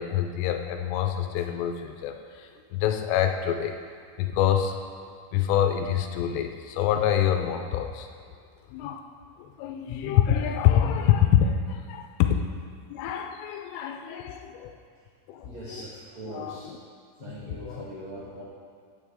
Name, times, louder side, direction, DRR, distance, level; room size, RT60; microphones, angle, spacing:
voice 1, 0.0-3.8 4.2-4.8 5.3-8.1 8.7-9.1 9.4-12.1 12.9-14.7 15.3-15.8 16.3-16.6 17.6-17.8, left 10 dB, 80° left, 5 dB, 3.0 m, -26 dB
voice 2, 15.4-16.7 17.2-18.4, right 1 dB, 80° right, -7 dB, 1.5 m, -41 dB
14.5 x 9.1 x 3.6 m, 2.1 s
omnidirectional pair, 5.9 m